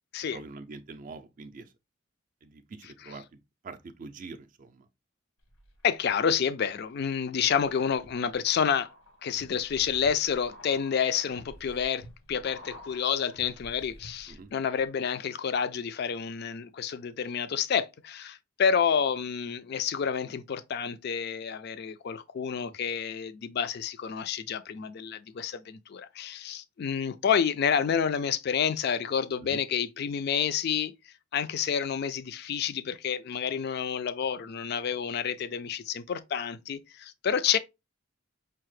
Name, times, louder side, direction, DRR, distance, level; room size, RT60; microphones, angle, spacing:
voice 1, 0.3-1.7 2.4-4.9 14.3-14.5 29.4-29.6, right 3 dB, 40° right, 0.4 m, -44 dB
sound 1, 5.4-6.2 6.6-14.5 14.8-14.9, equal, 85° left, 1.1 m, -51 dB
voice 2, 5.8-8.9 9.2-30.9 31.3-37.6, left 7 dB, 50° left, 0.3 m, -29 dB
5.6 x 2.0 x 3.1 m
head